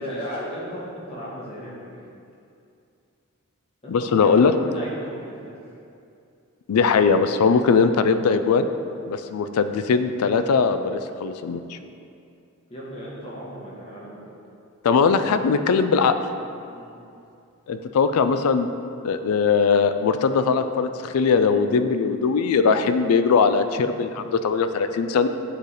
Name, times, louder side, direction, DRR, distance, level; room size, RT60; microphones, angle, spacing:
voice 1, 0.0-2.1 3.8-5.6 12.7-14.4 16.7-16.9, equal, 25° left, -7 dB, 1.2 m, -35 dB
voice 2, 3.9-4.5 6.7-8.7 9.1-11.8 14.8-16.1 17.7-18.7 19.0-25.3, left 5 dB, 85° left, 10 dB, 0.4 m, -20 dB
8.6 x 3.3 x 4.0 m, 2.5 s
head